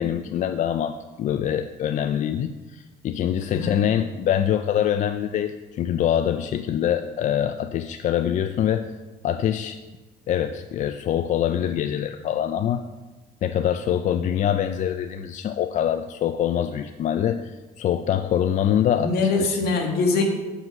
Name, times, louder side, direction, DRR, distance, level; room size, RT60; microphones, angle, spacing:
voice 1, 0.0-8.9 9.2-9.8 10.3-12.8 13.4-19.6, left 10 dB, 45° left, 9 dB, 0.4 m, -24 dB
voice 2, 3.4-3.8 19.0-20.2, left 3 dB, 70° left, 2 dB, 1.6 m, -23 dB
7.7 x 5.4 x 5.8 m, 1.2 s
cardioid pair, 110°, 17 cm